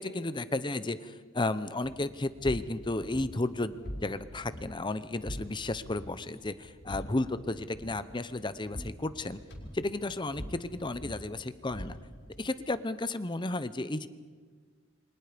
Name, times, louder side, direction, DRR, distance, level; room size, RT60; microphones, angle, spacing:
voice 1, 0.0-9.4 9.7-12.0 12.4-14.1, left 2 dB, 25° left, 13 dB, 0.8 m, -33 dB
sound 1, 1.8-12.4, equal, 55° left, 4.7 m, -45 dB
28.5 x 25.0 x 5.2 m, 1.5 s
head